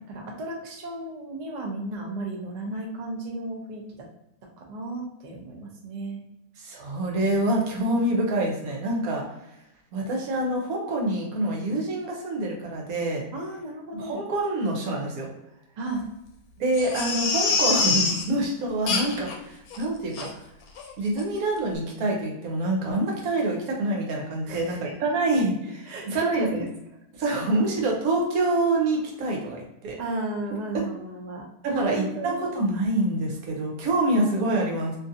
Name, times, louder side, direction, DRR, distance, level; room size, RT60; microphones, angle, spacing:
voice 1, 0.1-3.8 4.6-6.2 13.3-14.2 15.8-16.0 24.5-25.0 25.9-26.7 30.0-32.5, right 2 dB, 90° right, 0 dB, 0.3 m, -34 dB
voice 2, 6.6-9.2 9.9-13.2 13.9-15.3 16.6-20.3 21.0-26.6 27.1-30.0 30.7-30.8 31.6-35.0, right 2 dB, 70° right, -1 dB, 1.2 m, -26 dB
Crying sobbing, 16.7-18.2 18.9-19.3 19.7-19.8 20.1-20.3 20.8-20.9 21.2-21.3, left 4 dB, 75° left, 1.0 m, -25 dB
2.8 x 2.5 x 2.6 m, 0.87 s
omnidirectional pair, 1.6 m